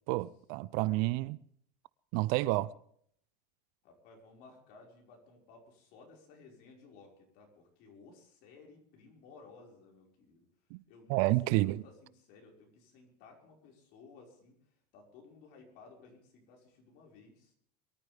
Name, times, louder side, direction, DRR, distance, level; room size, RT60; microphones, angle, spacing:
voice 1, 0.1-1.4 2.1-2.7 10.7-10.8 11.1-11.8, right 19 dB, 55° right, 0.5 m, -29 dB
voice 2, 3.8-10.5 10.9-14.6 14.9-17.5, left 4 dB, 50° left, 5.5 m, -57 dB
23.5 x 13.5 x 3.5 m
supercardioid pair, 150°, 20 cm